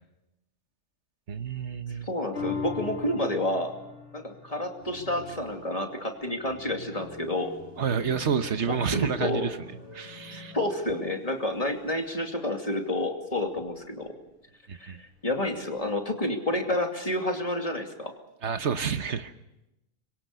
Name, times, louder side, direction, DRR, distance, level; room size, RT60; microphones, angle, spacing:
voice 1, 1.3-2.1 7.8-9.6 9.9-10.5 14.7-15.0 18.4-19.3, right 7 dB, 70° right, 9 dB, 1.4 m, -29 dB
voice 2, 2.0-3.7 4.1-7.5 8.7-9.5 10.3-14.1 14.8-18.1, left 1 dB, 30° left, 3 dB, 2.7 m, -29 dB
sound 1, 2.3-9.0 9.5-9.6, left 5 dB, 75° left, 3.2 m, -41 dB
sound 2, 4.8-11.3 11.6-11.7 13.4-14.1 15.1-15.8, left 1 dB, 45° left, 5.0 m, -46 dB
25.5 x 23.0 x 6.8 m, 0.92 s
omnidirectional pair, 1.3 m